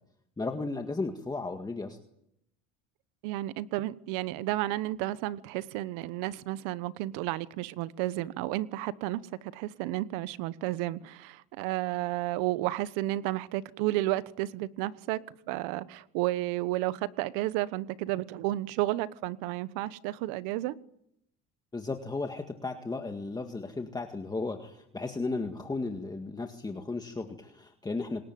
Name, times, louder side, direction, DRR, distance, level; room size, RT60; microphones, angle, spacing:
voice 1, 0.4-2.0 21.7-28.2, left 3 dB, 10° left, 5 dB, 1.9 m, -35 dB
voice 2, 3.2-20.7, right 16 dB, 80° right, 16 dB, 1.2 m, -32 dB
26.5 x 20.5 x 9.3 m, 0.78 s
cardioid pair, 135°, 33 cm